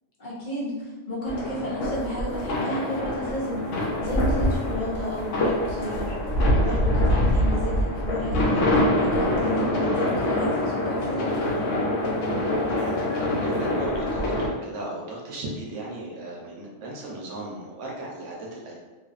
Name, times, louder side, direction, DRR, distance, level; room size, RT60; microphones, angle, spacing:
voice 1, 0.2-6.1 6.5-11.8, equal, 50° left, -6 dB, 0.8 m, -32 dB
sound 1, 1.3-14.5, left 1 dB, 85° left, 0.9 m, -24 dB
voice 2, 12.7-18.8, right 1 dB, 75° right, -3 dB, 1.0 m, -36 dB
2.6 x 2.3 x 2.3 m, 1.2 s
omnidirectional pair, 1.2 m